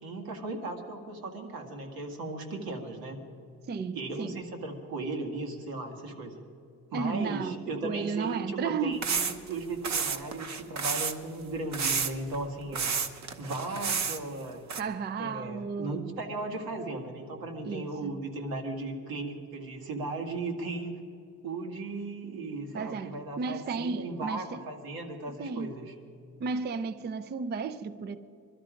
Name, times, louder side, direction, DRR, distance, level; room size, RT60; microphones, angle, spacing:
voice 1, 0.0-3.2 3.9-6.4 6.9-12.9 13.4-14.6 15.2-21.0 21.4-25.9, right 2 dB, 85° right, 2.1 m, -36 dB
voice 2, 3.7-4.4 6.9-9.1 14.8-16.2 17.6-18.2 22.7-24.6 25.3-25.7 26.4-28.2, right 5 dB, 30° right, 0.4 m, -34 dB
sound 1, 9.0-9.5 9.8-11.1 11.7-12.4 12.7-14.2 14.7-14.8, right 6 dB, 50° right, 1.0 m, -30 dB
22.0 x 12.5 x 5.1 m
cardioid pair, 165°, 35 cm